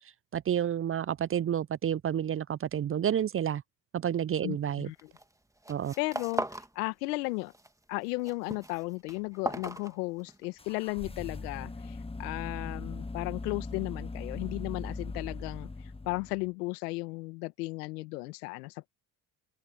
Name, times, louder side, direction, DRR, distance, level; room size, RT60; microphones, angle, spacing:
voice 1, 0.3-3.6 3.9-4.9 5.7-5.9, right 9 dB, 30° right, 0.5 m, -30 dB
voice 2, 4.4-5.1 6.0-6.4 6.8-7.5 7.9-15.7 16.1-18.9, left 24 dB, 85° left, 1.7 m, -35 dB
sound 1, 5.0-5.3 5.6-6.7 7.0-7.7 8.0-10.5, right 1 dB, 5° right, 1.9 m, -38 dB
sound 2, 10.6-16.5, left 3 dB, 10° left, 1.3 m, -40 dB
open air
hypercardioid pair, 65°, 46 cm